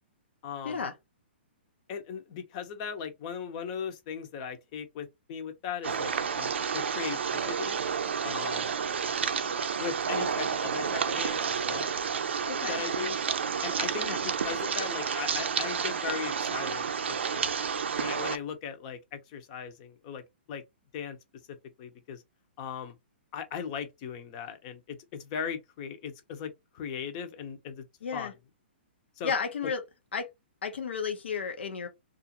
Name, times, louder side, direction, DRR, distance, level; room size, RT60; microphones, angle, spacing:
voice 1, 0.4-0.8 1.9-7.8 8.2-8.7 9.8-11.9 12.6-13.2 13.6-17.6 18.0-20.2 20.5-20.6 20.9-21.2 21.8-22.2 22.6-23.0 23.3-27.8 28.1-28.3 29.2-29.3, left 7 dB, 40° left, 0.7 m, -38 dB
sound 1, 5.8-18.4, right 6 dB, 80° right, 0.5 m, -30 dB
voice 2, 12.5-12.8 14.0-14.2 28.0-28.3 29.2-29.8 30.1-30.3 30.6-31.9, left 6 dB, 80° left, 0.8 m, -32 dB
2.5 x 2.4 x 2.8 m
hypercardioid pair, 145°, 6 cm